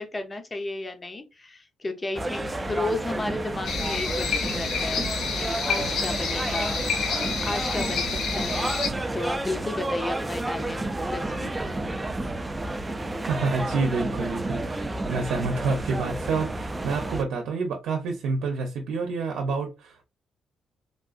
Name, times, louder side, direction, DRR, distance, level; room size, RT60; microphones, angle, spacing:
voice 1, 0.0-5.1 5.4-8.8 9.1-11.5, left 2 dB, 25° left, 0.6 m, -33 dB
sound 1, 2.1-17.2, right 2 dB, 15° right, 0.4 m, -31 dB
sound 2, 3.7-8.9, left 5 dB, 85° left, 0.7 m, -29 dB
voice 2, 13.3-20.0, right 4 dB, 85° right, 0.7 m, -28 dB
3.5 x 2.5 x 2.4 m
cardioid pair, 120°, 0 cm